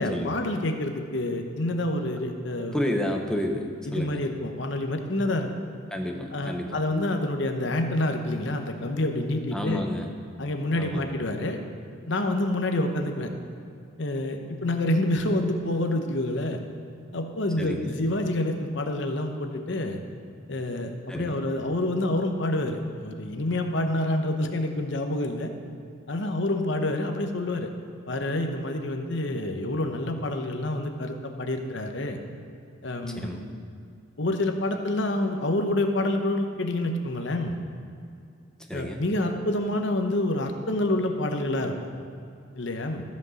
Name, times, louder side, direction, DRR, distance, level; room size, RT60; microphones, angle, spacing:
voice 1, 0.0-2.8 3.9-5.5 6.3-9.8 10.4-11.6 12.1-13.3 14.0-16.6 17.1-20.0 20.5-25.5 26.1-27.7 28.1-32.2 32.8-33.5 34.2-37.6 38.7-41.7 42.6-43.0, left 1 dB, 60° left, 5 dB, 0.9 m, -27 dB
voice 2, 2.7-4.2 5.9-6.8 9.5-10.1 10.8-11.1 17.6-18.0 21.1-21.4 33.0-33.4 38.7-39.0, left 1 dB, 5° left, 2 dB, 0.7 m, -30 dB
13.5 x 5.2 x 6.4 m, 2.4 s
head